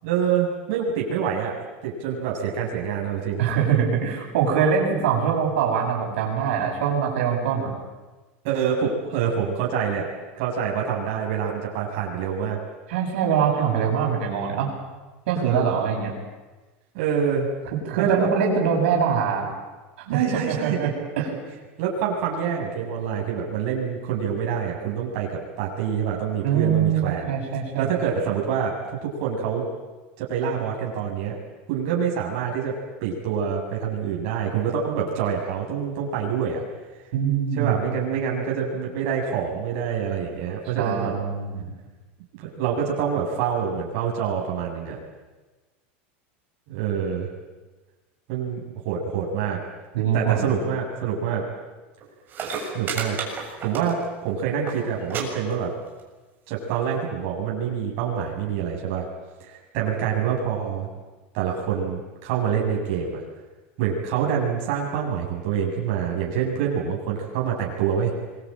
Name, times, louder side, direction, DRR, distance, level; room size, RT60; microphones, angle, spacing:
voice 1, 0.0-1.5 1.8-3.4 8.4-10.1 10.4-12.6 16.9-17.5 18.0-18.3 20.1-20.8 21.8-27.3 27.8-29.7 30.2-31.3 31.7-32.7 33.0-36.6 37.5-41.1 42.4-45.0 46.7-47.3 48.3-49.6 50.1-51.4 52.7-53.2 53.6-55.7 56.5-59.1 59.4-60.9 61.3-63.2 63.8-68.1, right 7 dB, 60° right, -2 dB, 7.6 m, -26 dB
voice 2, 3.4-7.7 12.9-14.7 15.3-16.1 17.8-19.5 20.0-21.3 26.4-27.9 37.1-37.8 40.8-41.7 49.9-50.6, right 7 dB, 80° right, -1 dB, 7.6 m, -23 dB
sound 1, 52.0-52.1 52.3-54.2 54.5-54.8 55.1-55.2 55.5-56.0 56.8-56.9, right 6 dB, 30° right, 6.7 m, -31 dB
26.5 x 22.0 x 9.1 m, 1.2 s
supercardioid pair, 140°, 6 cm